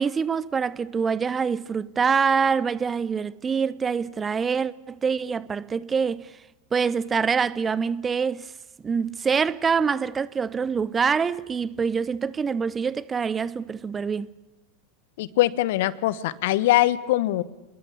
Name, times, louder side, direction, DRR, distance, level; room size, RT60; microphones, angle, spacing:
voice 1, 0.0-6.3 6.7-8.5 8.8-14.3, right 6 dB, 20° right, 0.8 m, -25 dB
voice 2, 15.2-17.4, left 16 dB, 60° left, 1.2 m, -22 dB
28.0 x 21.5 x 8.5 m
figure-of-eight pair, 85°, 0 cm